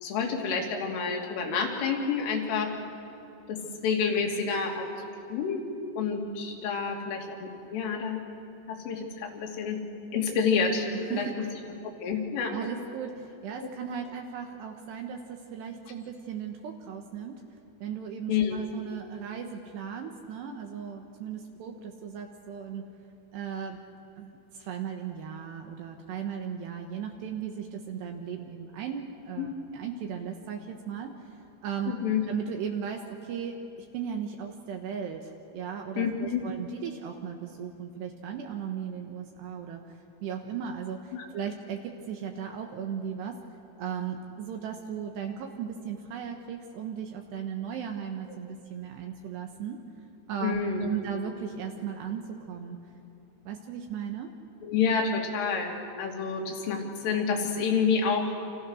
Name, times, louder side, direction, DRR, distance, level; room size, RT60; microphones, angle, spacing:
voice 1, 0.0-2.7 3.5-4.9 5.3-5.7 6.0-8.2 8.7-9.8 10.1-11.5 11.8-12.5 13.6-13.7 18.3-18.6 29.4-29.5 31.9-32.2 36.0-36.4 41.1-41.3 50.4-50.9 54.6-55.7 56.0-58.3, left 6 dB, 75° left, 1 dB, 5.1 m, -28 dB
voice 2, 10.9-11.5 12.5-17.4 17.8-22.9 23.3-23.8 24.2-31.1 31.6-32.0 32.3-39.9 40.2-43.4 43.8-49.8 50.3-50.6 50.9-52.8 53.4-54.3, right 7 dB, 70° right, 3 dB, 3.1 m, -36 dB
30.0 x 27.5 x 6.4 m, 2.8 s
omnidirectional pair, 5.8 m